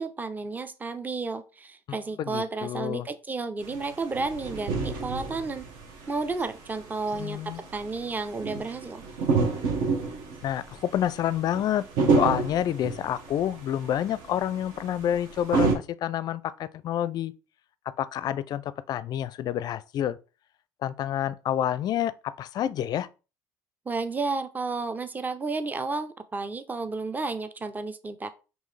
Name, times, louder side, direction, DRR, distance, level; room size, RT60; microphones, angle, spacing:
voice 1, 0.0-5.7 6.1-7.4 7.7-9.0 23.9-28.3, right 3 dB, 20° right, 0.6 m, -32 dB
voice 2, 2.2-3.1 7.1-7.6 10.4-11.8 12.1-17.3 18.0-20.2 20.8-23.1, left 11 dB, 50° left, 0.4 m, -28 dB
sound 1, 3.6-15.8, right 4 dB, 65° right, 1.3 m, -29 dB
5.4 x 3.0 x 3.3 m
hypercardioid pair, 70°, 9 cm